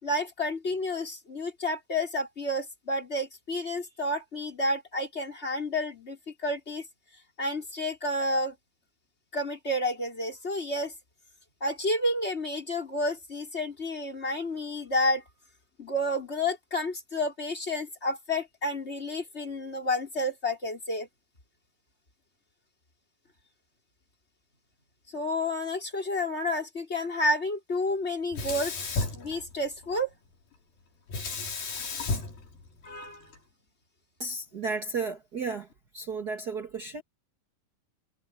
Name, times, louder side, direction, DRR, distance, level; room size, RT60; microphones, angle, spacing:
voice 1, 0.0-6.9 7.4-8.5 9.3-10.9 11.6-15.2 15.8-21.1 25.1-28.7 29.1-30.1 32.8-33.3, left 1 dB, 15° left, 4.7 m, -30 dB
Sink (filling or washing), 28.3-30.0 31.1-33.4, left 3 dB, 70° left, 6.5 m, -34 dB
voice 2, 34.2-35.7 35.9-37.0, right 4 dB, 55° right, 1.0 m, -33 dB
omnidirectional pair, 4.2 m